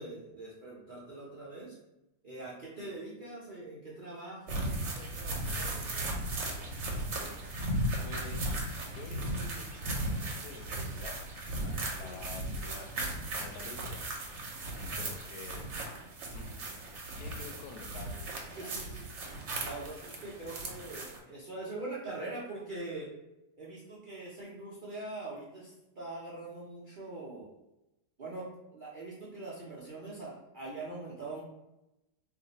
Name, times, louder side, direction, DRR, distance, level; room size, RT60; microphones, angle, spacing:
voice 1, 0.0-1.8 2.2-6.4 11.6-12.2 14.9-15.2 15.7-16.0 18.5-19.1 19.6-23.1 23.6-27.5 28.2-31.4, right 2 dB, 80° right, -7 dB, 0.4 m, -43 dB
sound 1, 4.5-21.2, right 1 dB, 60° right, 0.8 m, -36 dB
voice 2, 8.0-8.5 8.9-11.2 12.0-13.1 13.4-14.0 14.7-15.8 16.3-16.5 17.2-18.9, left 4 dB, 75° left, 4 dB, 1.0 m, -49 dB
2.5 x 2.5 x 4.0 m, 0.94 s
omnidirectional pair, 1.8 m